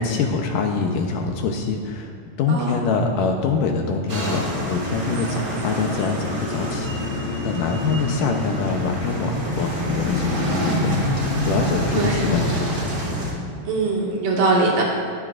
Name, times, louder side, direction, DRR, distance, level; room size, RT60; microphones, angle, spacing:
voice 1, 0.0-2.1 2.4-13.1, left 4 dB, 75° left, 2 dB, 2.4 m, -25 dB
voice 2, 2.5-2.8 11.9-12.3 13.7-14.8, right 3 dB, 75° right, -3 dB, 3.5 m, -21 dB
sound 1, 4.1-13.3, left 1 dB, 35° right, 1.9 m, -26 dB
21.0 x 11.5 x 2.5 m, 2.1 s
omnidirectional pair, 3.9 m